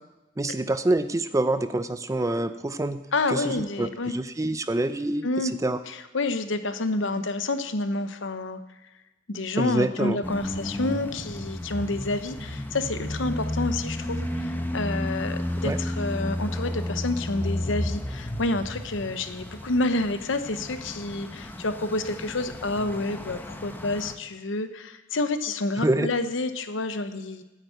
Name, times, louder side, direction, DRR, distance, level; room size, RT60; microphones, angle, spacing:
voice 1, 0.4-3.0 3.3-5.3 5.6-5.8 9.6-10.2 15.6-15.8 25.8-26.1, right 2 dB, 15° right, 12 dB, 0.5 m, -26 dB
voice 2, 3.1-4.1 5.2-5.5 5.9-8.6 9.3-27.4, left 2 dB, 70° left, 10 dB, 0.9 m, -29 dB
sound 1, 10.2-24.1, left 1 dB, 10° left, 0.9 m, -32 dB
10.0 x 9.0 x 8.0 m, 1.0 s
head